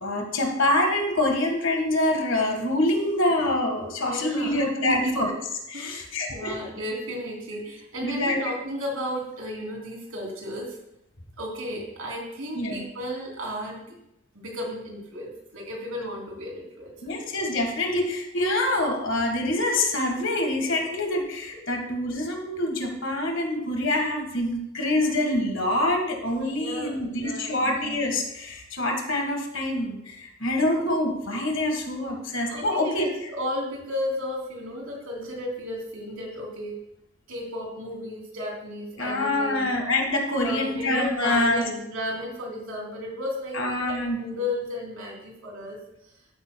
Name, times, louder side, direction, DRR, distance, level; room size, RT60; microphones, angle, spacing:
voice 1, 0.0-5.3 5.7-6.5 8.0-8.4 12.5-12.8 17.0-33.3 39.0-41.6 43.5-44.2, left 1 dB, 60° left, 4 dB, 1.6 m, -25 dB
voice 2, 4.0-4.6 4.8-5.3 5.7-10.8 11.4-13.9 14.3-17.1 20.6-20.7 21.5-21.7 26.5-27.5 32.5-36.8 37.3-39.7 40.4-45.8, left 1 dB, 80° right, -1 dB, 3.0 m, -34 dB
13.0 x 8.8 x 2.3 m, 0.81 s
head